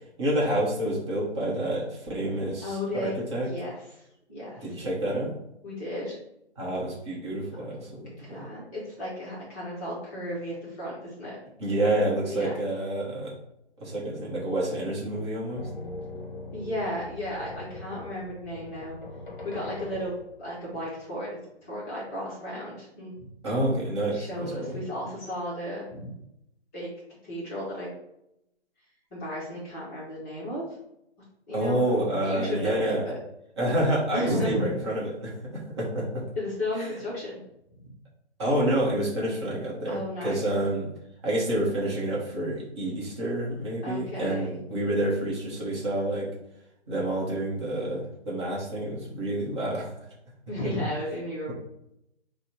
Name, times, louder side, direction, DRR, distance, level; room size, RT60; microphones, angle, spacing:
voice 1, 0.2-3.5 4.6-5.3 6.6-8.4 11.6-13.3 13.8-15.7 23.4-24.8 31.5-33.0 33.6-36.2 36.8-36.9 38.4-40.9 41.2-46.3 46.9-49.9 51.5-51.6, right 1 dB, 25° right, -5 dB, 0.8 m, -28 dB
voice 2, 2.6-4.0 4.3-4.7 5.6-6.2 8.2-11.4 12.3-12.5 16.5-19.0 19.4-21.3 21.6-23.1 24.1-26.1 26.7-26.9 27.2-27.9 29.1-30.6 31.5-32.0 32.2-33.2 34.1-34.7 36.3-37.4 37.8-37.9 39.9-40.4 43.8-44.6 50.5-51.5, left 1 dB, 15° left, -8 dB, 0.7 m, -34 dB
sound 1, 15.5-20.6, left 2 dB, 45° left, 0.8 m, -41 dB
4.0 x 2.1 x 4.2 m, 0.82 s
figure-of-eight pair, 140°, 34 cm